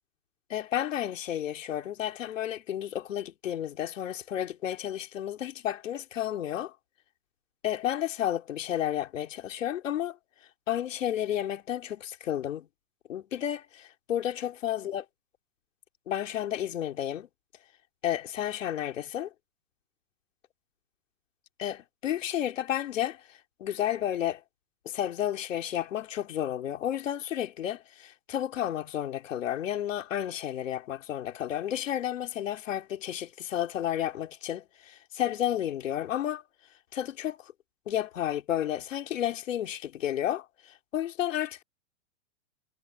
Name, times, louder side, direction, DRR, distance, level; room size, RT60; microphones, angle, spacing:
voice 1, 0.5-6.7 7.6-10.2 10.7-12.7 13.1-15.1 16.1-17.3 18.0-19.3 21.6-23.2 23.6-24.4 24.9-36.4 36.9-37.5 37.9-40.5 40.9-41.6, left 11 dB, 85° left, 4.1 m, -31 dB
supercardioid pair, 150°, 37 cm